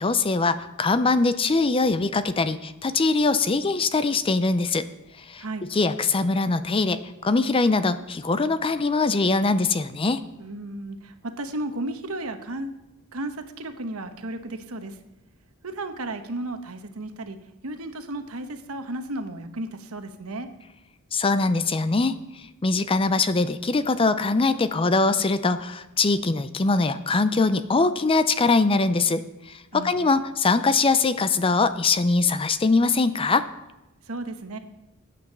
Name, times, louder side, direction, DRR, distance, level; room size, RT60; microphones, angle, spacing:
voice 1, 0.0-4.9 5.2-10.3 21.1-33.5, left 3 dB, 25° left, 12 dB, 0.5 m, -22 dB
voice 2, 10.4-12.7 13.1-15.0 15.6-17.4 17.6-20.5 29.7-30.0 34.0-34.6, right 2 dB, 75° right, 8 dB, 1.1 m, -34 dB
10.0 x 8.6 x 6.7 m, 1.0 s
head